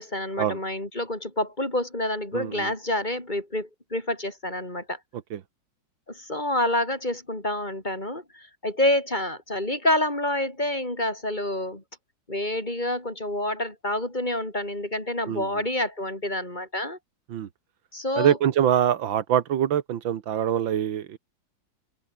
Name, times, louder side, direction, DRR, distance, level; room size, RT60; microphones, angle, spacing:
voice 1, 0.0-5.0 6.1-11.8 12.3-17.0 17.9-18.4, left 1 dB, 20° left, 5.0 m, -28 dB
voice 2, 2.3-2.7 5.3-5.4 15.3-15.5 17.3-17.5 18.2-21.2, right 10 dB, 90° right, 2.0 m, -24 dB
omnidirectional pair, 2.1 m